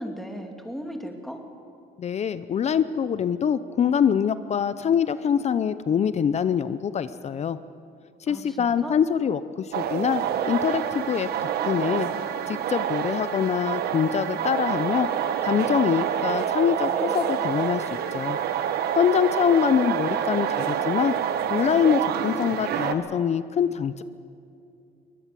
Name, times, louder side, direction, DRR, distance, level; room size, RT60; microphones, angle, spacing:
voice 1, 0.0-1.4 8.3-9.0, equal, ahead, 4 dB, 2.6 m, -36 dB
voice 2, 2.0-7.6 8.2-11.3 11.7-12.1 12.5-15.1 15.4-17.8 18.1-18.4 19.0-21.1 21.5-24.0, left 8 dB, 40° left, 14 dB, 0.7 m, -24 dB
sound 1, 9.7-22.9, right 9 dB, 70° right, 1.5 m, -27 dB
23.0 x 19.0 x 7.6 m, 2.4 s
cardioid pair, 110°, 17 cm